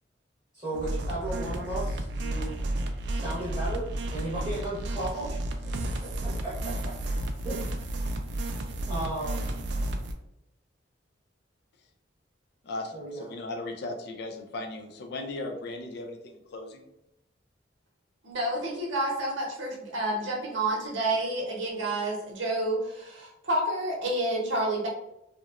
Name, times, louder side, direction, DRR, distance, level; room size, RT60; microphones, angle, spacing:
voice 1, 0.5-2.7 3.1-5.3 6.2-7.9 8.9-9.5 12.9-13.2, right 1 dB, 15° right, -9 dB, 0.8 m, -35 dB
sound 1, 0.7-10.1, right 1 dB, 60° right, 0.3 m, -32 dB
voice 2, 12.6-16.8, left 2 dB, 60° left, 3 dB, 0.4 m, -37 dB
voice 3, 18.2-24.9, right 1 dB, 85° right, -1 dB, 0.8 m, -29 dB
2.9 x 2.0 x 2.4 m, 0.84 s
head